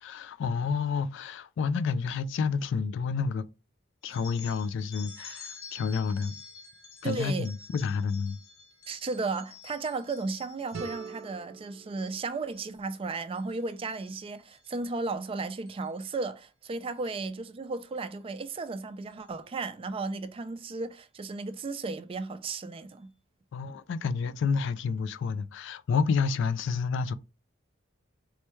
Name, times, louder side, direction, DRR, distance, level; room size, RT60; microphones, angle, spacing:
voice 1, 0.0-3.5 4.0-6.4 7.0-8.4 23.5-27.1, left 5 dB, 65° left, 0.3 m, -29 dB
sound 1, 4.0-11.3 11.8-12.2 12.5-13.0 13.3-14.7 15.7-15.9 16.8-17.0 18.0-18.1 18.5-18.6 19.1-19.3, left 5 dB, 85° left, 1.2 m, -49 dB
voice 2, 7.0-7.5 8.9-23.1, right 3 dB, 25° right, 0.3 m, -34 dB
sound 2, 10.7-13.6, right 5 dB, 70° right, 0.6 m, -44 dB
4.3 x 2.2 x 3.0 m
head